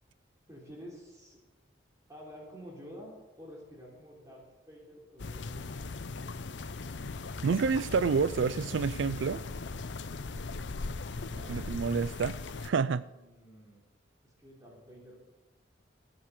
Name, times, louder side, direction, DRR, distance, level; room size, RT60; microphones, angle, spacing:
voice 1, 0.5-1.4 2.1-6.0 11.3-12.0 13.1-13.8 14.2-15.2, equal, 15° right, 3.4 m, -50 dB
sound 1, 5.2-12.7, left 3 dB, 70° left, 0.7 m, -39 dB
voice 2, 7.4-9.4 11.5-13.1, right 5 dB, 75° right, 0.4 m, -29 dB
16.0 x 8.7 x 6.7 m
head